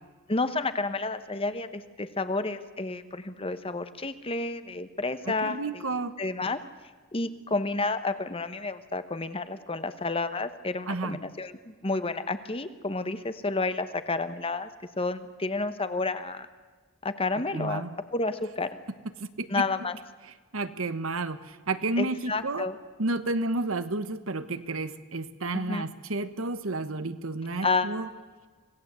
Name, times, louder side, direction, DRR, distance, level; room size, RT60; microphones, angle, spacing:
voice 1, 0.3-5.8 6.2-6.6 7.1-14.7 15.0-16.5 17.0-17.8 18.1-18.7 19.5-20.0 22.0-22.8 25.5-25.9 27.6-27.9, left 3 dB, 25° left, 11 dB, 1.1 m, -30 dB
voice 2, 5.3-6.1 10.9-11.2 17.5-17.9 19.2-19.6 20.5-22.7 23.0-28.1, right 2 dB, 75° right, 12 dB, 1.2 m, -31 dB
26.0 x 18.0 x 8.2 m, 1.4 s
head